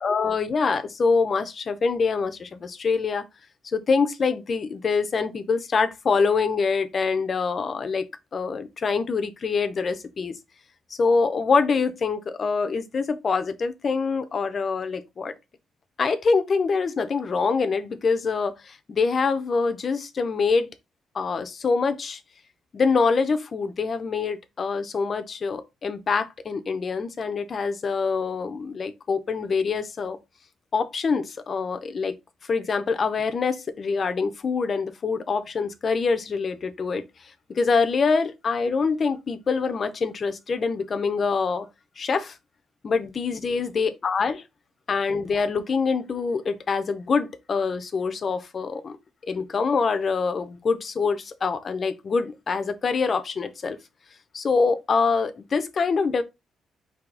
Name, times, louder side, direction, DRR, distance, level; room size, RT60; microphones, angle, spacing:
voice 1, 0.0-3.2 3.6-8.1 8.3-10.3 11.0-15.3 16.0-20.7 21.1-22.2 22.7-30.2 30.7-32.1 32.4-37.0 37.5-41.7 42.0-42.4 42.8-44.4 44.9-49.0 49.3-53.8 54.3-56.2, left 4 dB, 30° left, 0.5 m, -25 dB
4.7 x 2.7 x 3.7 m
cardioid pair, 180°, 0 cm